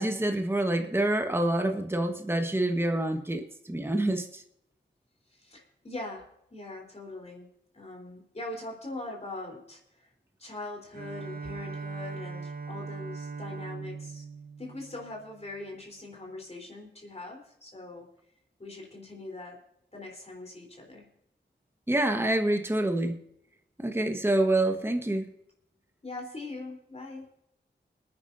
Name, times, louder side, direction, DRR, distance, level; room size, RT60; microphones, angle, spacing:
voice 1, 0.0-4.4 21.9-23.2 23.8-25.3, right 1 dB, 10° right, 5 dB, 1.4 m, -27 dB
voice 2, 5.3-7.5 7.7-10.1 10.4-14.3 14.6-18.1 18.6-19.6 19.9-21.1 26.0-27.3, left 2 dB, 35° left, 0 dB, 3.8 m, -41 dB
Bowed string instrument, 10.9-15.6, right 4 dB, 50° right, 0.8 m, -40 dB
28.5 x 9.7 x 2.7 m, 0.78 s
cardioid pair, 55°, 19 cm